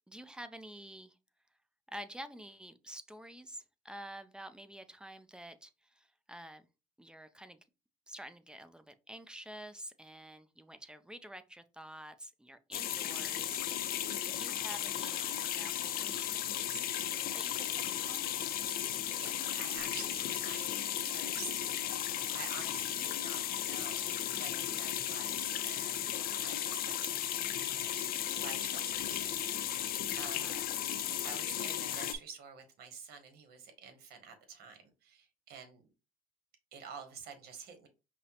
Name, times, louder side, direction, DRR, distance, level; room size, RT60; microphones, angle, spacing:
voice 1, 0.1-1.2 1.9-6.7 7.0-7.6 8.1-16.8 17.3-18.3 30.2-30.7 31.1-31.4, equal, 5° right, 0.4 m, -49 dB
sound 1, 12.7-32.1, left 11 dB, 60° left, 0.4 m, -35 dB
voice 2, 18.6-26.1 26.4-27.3 27.7-28.1 28.4-30.5 31.0-35.9 36.7-37.9, right 6 dB, 70° right, 1.0 m, -49 dB
5.2 x 2.1 x 2.8 m
cardioid pair, 110°, 17 cm